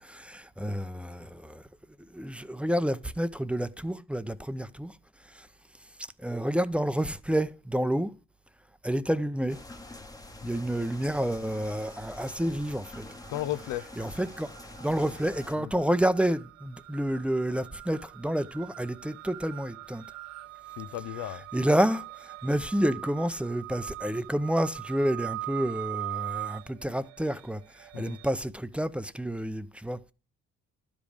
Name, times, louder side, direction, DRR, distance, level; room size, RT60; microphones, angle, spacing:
voice 1, 0.0-1.6 2.1-4.9 5.3-5.5 6.2-8.1 8.8-9.6 10.4-13.1 14.0-14.5 14.8-20.0 21.5-30.0, equal, 5° right, 0.6 m, -29 dB
sound 1, 9.5-15.6, left 2 dB, 10° left, 1.0 m, -46 dB
sound 2, 10.9-11.4 11.7-28.3, right 18 dB, 60° right, 0.5 m, -43 dB
voice 2, 13.3-13.9 15.5-15.7 20.8-21.4 27.9-28.2, left 14 dB, 90° left, 0.6 m, -35 dB
12.0 x 5.2 x 5.0 m
cardioid pair, 90°, 30 cm